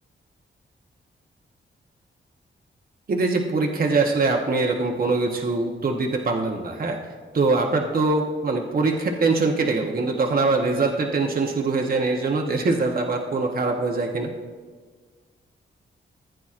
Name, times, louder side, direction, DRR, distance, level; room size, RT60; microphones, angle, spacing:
voice 1, 3.1-7.0 7.3-14.3, right 3 dB, 45° right, 2 dB, 0.9 m, -23 dB
15.5 x 9.0 x 2.5 m, 1.5 s
cardioid pair, 90°, 20 cm